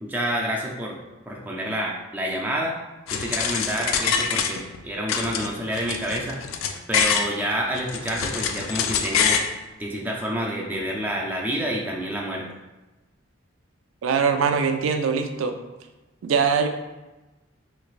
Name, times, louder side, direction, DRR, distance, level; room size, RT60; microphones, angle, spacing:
voice 1, 0.0-1.0 1.3-2.8 3.1-6.4 6.9-9.4 9.8-12.5, equal, 10° right, -2 dB, 0.3 m, -28 dB
sound 1, 3.1-4.8 5.1-7.3 7.7-9.5, left 6 dB, 80° left, 0.3 m, -25 dB
voice 2, 14.0-15.5 16.2-16.7, right 6 dB, 85° right, 6 dB, 0.4 m, -22 dB
3.2 x 3.2 x 2.4 m, 1.1 s
head